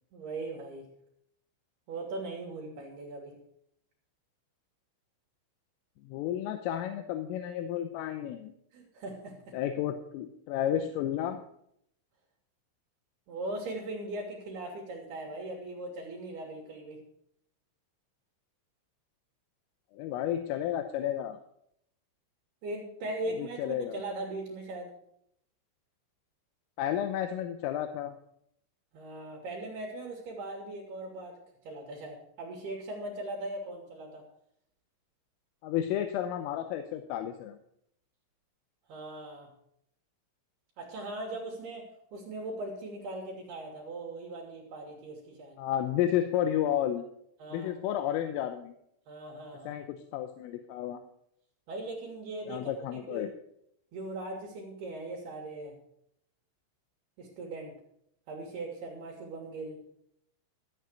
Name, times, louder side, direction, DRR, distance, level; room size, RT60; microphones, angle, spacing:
voice 1, 0.1-0.9 1.9-3.4 8.7-9.6 13.3-17.0 22.6-24.9 28.9-31.4 31.6-34.2 38.9-39.5 40.8-45.6 47.4-47.7 49.1-49.7 51.7-53.3 53.9-55.8 57.2-57.8 58.3-59.8, right 2 dB, 55° right, -2 dB, 3.8 m, -39 dB
voice 2, 6.1-8.5 9.5-11.4 19.9-21.4 23.4-24.0 26.8-28.2 35.6-37.6 45.6-47.1 47.5-48.7 49.7-51.0 52.5-53.3, left 11 dB, 80° left, 8 dB, 3.4 m, -32 dB
14.0 x 8.3 x 6.3 m, 0.72 s
omnidirectional pair, 5.9 m